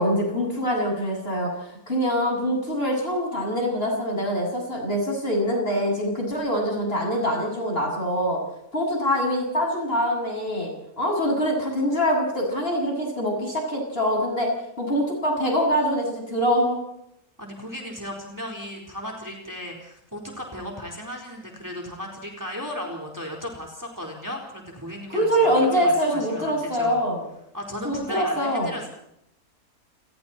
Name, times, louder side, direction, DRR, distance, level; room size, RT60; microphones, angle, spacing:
voice 1, 0.0-1.5 1.9-8.4 8.7-14.5 14.8-16.8 25.1-27.2 27.8-28.7, equal, 40° left, 0 dB, 7.8 m, -24 dB
voice 2, 17.4-27.0 27.5-28.9, equal, 10° right, 1 dB, 4.3 m, -36 dB
29.5 x 21.5 x 4.4 m, 0.77 s
omnidirectional pair, 1.6 m